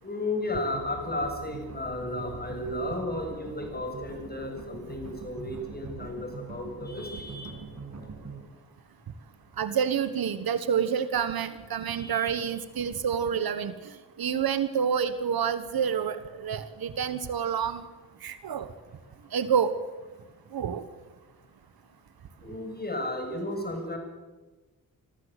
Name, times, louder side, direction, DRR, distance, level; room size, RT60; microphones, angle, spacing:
voice 1, 0.0-7.5 12.0-12.4 22.4-24.0, left 1 dB, 25° left, 3 dB, 7.6 m, -34 dB
sound 1, 0.7-8.4, right 3 dB, 50° right, 6.5 m, -43 dB
voice 2, 9.6-13.7 14.2-17.8 18.2-18.7 19.3-19.7 20.5-20.8, right 7 dB, 70° right, 13 dB, 1.4 m, -28 dB
25.0 x 14.0 x 8.2 m, 1.2 s
cardioid pair, 60°, 37 cm